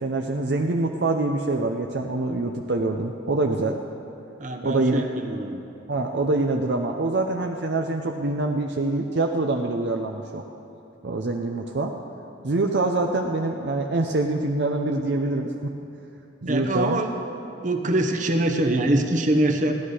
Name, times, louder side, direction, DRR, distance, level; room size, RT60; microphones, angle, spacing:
voice 1, 0.0-3.8 4.6-5.0 5.9-10.4 11.0-11.9 12.4-15.7 16.4-17.0, right 2 dB, 65° right, 2 dB, 0.6 m, -25 dB
voice 2, 4.4-5.6 16.5-19.7, right 1 dB, 45° right, 4 dB, 1.0 m, -24 dB
15.0 x 11.5 x 4.9 m, 2.8 s
head